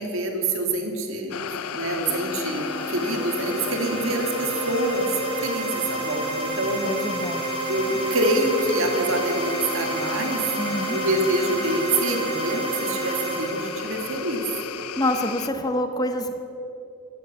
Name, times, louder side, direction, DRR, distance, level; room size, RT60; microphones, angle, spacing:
voice 1, 0.0-1.4 1.7-5.1 5.4-6.8 7.7-10.4 10.9-14.4, right 1 dB, 60° right, 3 dB, 2.0 m, -26 dB
sound 1, 1.3-15.5, left 7 dB, 80° left, 0.6 m, -34 dB
sound 2, 2.1-14.8, right 4 dB, 25° right, 2.0 m, -31 dB
voice 2, 6.8-7.6 10.6-11.0 15.0-16.4, left 1 dB, 15° left, 7 dB, 0.7 m, -26 dB
13.5 x 9.2 x 8.3 m, 2.8 s
head